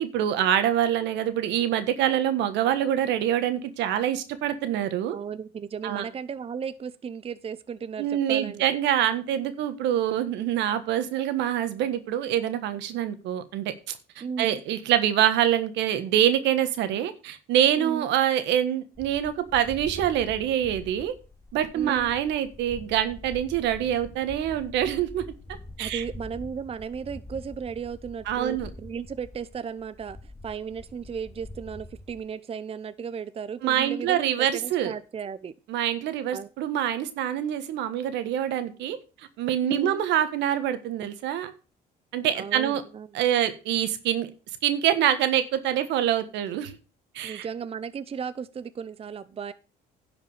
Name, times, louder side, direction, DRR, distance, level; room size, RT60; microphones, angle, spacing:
voice 1, 0.0-5.2 5.8-6.1 8.0-13.7 14.4-21.1 21.5-25.2 25.8-26.0 28.3-28.7 33.6-34.9 35.7-39.0 39.4-41.5 42.1-42.8 43.1-44.3 44.6-46.7 47.1-47.5, right 10 dB, 85° right, 11 dB, 1.4 m, -25 dB
voice 2, 5.1-8.8 14.2-14.6 17.8-18.1 21.7-22.1 25.8-34.2 34.5-35.5 36.3-36.5 39.6-40.0 42.3-43.1 47.2-49.5, right 6 dB, 35° right, 14 dB, 0.6 m, -35 dB
sound 1, 19.0-32.2, left 2 dB, 15° left, 2.4 m, -44 dB
11.0 x 5.1 x 6.5 m, 0.34 s
cardioid pair, 90°, 18 cm